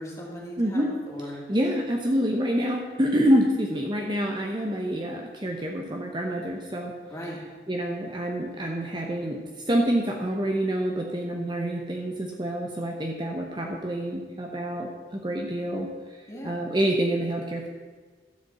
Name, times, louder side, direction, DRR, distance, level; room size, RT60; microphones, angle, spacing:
voice 1, 0.0-1.4 7.1-7.4 16.3-16.6, equal, 15° left, -3 dB, 2.2 m, -38 dB
voice 2, 0.6-0.9 1.5-6.9 7.2-7.4 7.7-16.2 16.4-17.7, equal, 25° right, 1 dB, 0.8 m, -27 dB
12.5 x 5.1 x 7.5 m, 1.5 s
head